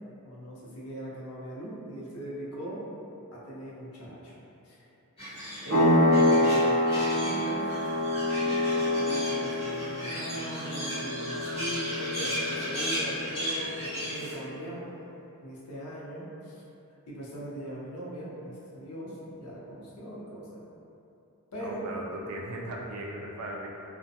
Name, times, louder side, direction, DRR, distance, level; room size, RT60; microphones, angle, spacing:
voice 1, 0.2-2.9 3.3-4.3 4.7-4.8 5.6-7.7 8.6-14.8 15.4-16.5 17.1-20.6 21.5-21.9, equal, 75° left, -6 dB, 0.6 m, -39 dB
sound 1, 5.2-14.3, equal, 25° left, 0.9 m, -36 dB
sound 2, 5.7-14.0, left 1 dB, 50° right, 0.7 m, -27 dB
voice 2, 21.6-23.7, right 1 dB, 80° right, -2 dB, 0.4 m, -37 dB
2.4 x 2.1 x 2.6 m, 2.8 s
head